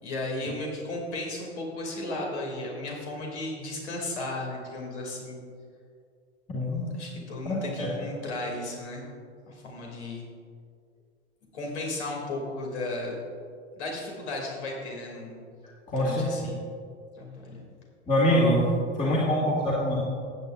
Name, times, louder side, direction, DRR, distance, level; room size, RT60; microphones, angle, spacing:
voice 1, 0.0-5.4 6.6-9.0 9.5-10.2 11.5-13.2 13.8-15.4 15.9-16.6 17.1-17.6, left 2 dB, 70° left, -1 dB, 2.8 m, -35 dB
voice 2, 6.5-6.9 7.5-7.9 15.9-16.3 18.1-18.6 19.0-20.0, left 1 dB, 20° left, -6 dB, 2.3 m, -24 dB
15.0 x 9.2 x 2.6 m, 2.2 s
figure-of-eight pair, 80°, 35 cm